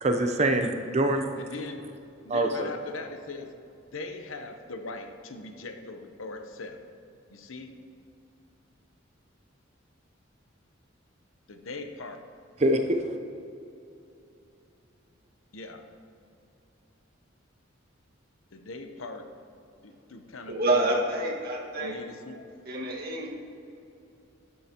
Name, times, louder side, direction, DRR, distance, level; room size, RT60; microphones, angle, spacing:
voice 1, 0.0-1.3 2.3-2.7 12.6-13.2, right 1 dB, 35° right, 6 dB, 0.6 m, -25 dB
voice 2, 1.4-1.9 2.2-3.5 3.9-6.8 7.3-7.8 11.5-12.2 15.5-15.9 18.5-19.3 19.8-21.0 21.8-22.4, left 3 dB, 85° left, 6 dB, 0.9 m, -40 dB
voice 3, 20.5-22.0 22.7-23.3, right 1 dB, 50° right, -2 dB, 1.7 m, -27 dB
12.0 x 11.5 x 2.9 m, 2.7 s
head